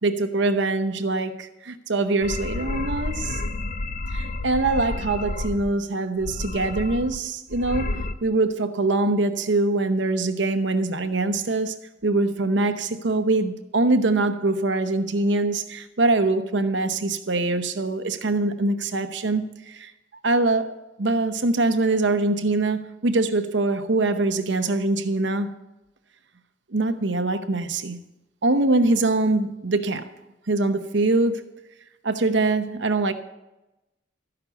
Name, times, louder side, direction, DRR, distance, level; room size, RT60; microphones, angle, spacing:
voice 1, 0.0-3.4 4.1-11.7 12.0-19.9 20.2-25.5 26.7-28.0 28.4-30.1 30.5-31.5 32.0-33.1, right 2 dB, 75° right, 0.9 m, -23 dB
sound 1, 2.2-5.7 6.2-7.2 7.5-8.1, left 2 dB, 45° left, 0.5 m, -30 dB
13.5 x 5.9 x 8.1 m
head